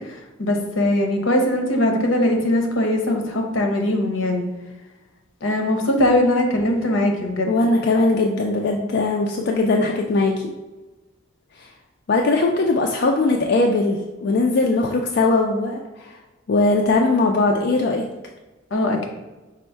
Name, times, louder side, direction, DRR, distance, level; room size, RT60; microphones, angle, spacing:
voice 1, 0.0-4.5 5.4-7.5 18.7-19.1, left 1 dB, 80° left, 3 dB, 0.8 m, -21 dB
voice 2, 7.5-10.3 11.6-11.7 12.1-16.1 16.5-18.0, left 3 dB, 55° left, 1 dB, 0.3 m, -20 dB
5.3 x 2.1 x 4.4 m, 1.1 s
head